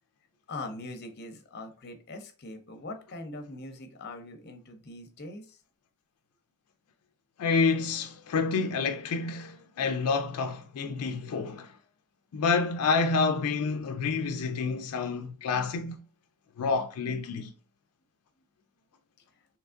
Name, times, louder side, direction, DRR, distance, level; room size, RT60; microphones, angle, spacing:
voice 1, 0.5-5.6, left 2 dB, 45° left, 0.6 m, -42 dB
voice 2, 7.4-11.7 12.3-16.0 16.6-17.5, left 4 dB, 85° left, 0.4 m, -28 dB
3.5 x 2.9 x 2.4 m
head